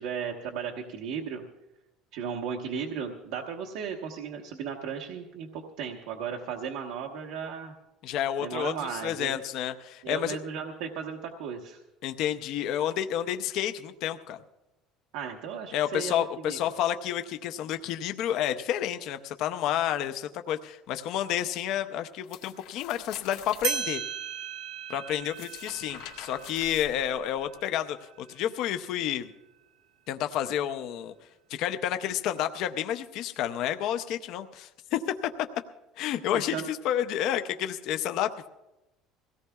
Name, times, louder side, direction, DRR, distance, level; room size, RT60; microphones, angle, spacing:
voice 1, 0.0-1.4 2.1-7.7 8.4-9.4 10.0-11.8 15.1-16.1 16.4-16.6 36.3-36.7, right 7 dB, 75° right, 2 dB, 1.1 m, -35 dB
voice 2, 8.0-10.4 12.0-14.4 15.7-24.0 24.9-29.3 30.1-31.1 31.5-35.0 36.0-38.5, left 10 dB, 50° left, 9 dB, 0.6 m, -30 dB
sound 1, 22.2-23.7 25.2-27.5, left 12 dB, 80° left, 2.0 m, -46 dB
sound 2, 23.3-23.4 23.6-28.7, right 8 dB, 55° right, 1.0 m, -37 dB
23.5 x 17.0 x 2.3 m, 0.97 s
cardioid pair, 170°, 0 cm